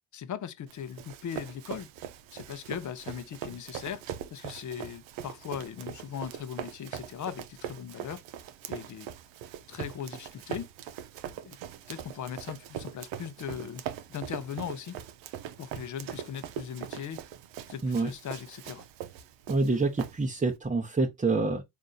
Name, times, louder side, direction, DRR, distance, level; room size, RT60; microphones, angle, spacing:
voice 1, 0.1-1.9 2.3-8.2 8.7-9.1 9.7-10.7 11.4-11.6 11.9-13.8 14.1-15.0 15.6-17.2 17.7-18.8, left 8 dB, 40° left, 0.6 m, -39 dB
Run, 0.7-20.5, right 10 dB, 80° right, 0.7 m, -41 dB
voice 2, 19.5-21.6, right 3 dB, 15° right, 0.8 m, -27 dB
3.6 x 2.6 x 4.0 m
supercardioid pair, 55°, 44 cm